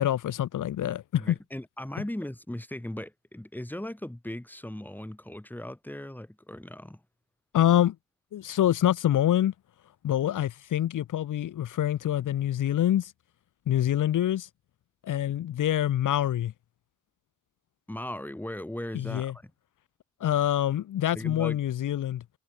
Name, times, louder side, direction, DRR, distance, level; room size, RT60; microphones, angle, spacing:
voice 1, 0.0-1.4 7.5-8.0 8.3-9.5 10.0-13.1 13.7-14.5 15.0-16.5 18.9-19.3 20.2-22.2, left 11 dB, 85° left, 0.7 m, -26 dB
voice 2, 1.1-7.0 17.9-19.5 21.1-21.6, left 1 dB, 5° left, 3.1 m, -38 dB
wide cardioid pair, 140°, 30 cm